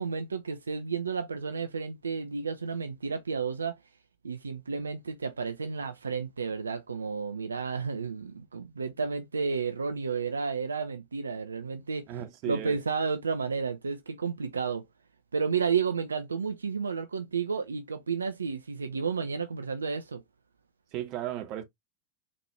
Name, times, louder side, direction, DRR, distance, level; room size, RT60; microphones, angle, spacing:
voice 1, 0.0-3.8 4.2-12.1 12.5-14.9 15.3-20.2, right 5 dB, 75° right, 0.4 m, -32 dB
voice 2, 12.1-12.8 20.9-21.6, right 12 dB, 40° right, 0.8 m, -35 dB
4.1 x 2.6 x 3.1 m
figure-of-eight pair, 90°, 0 cm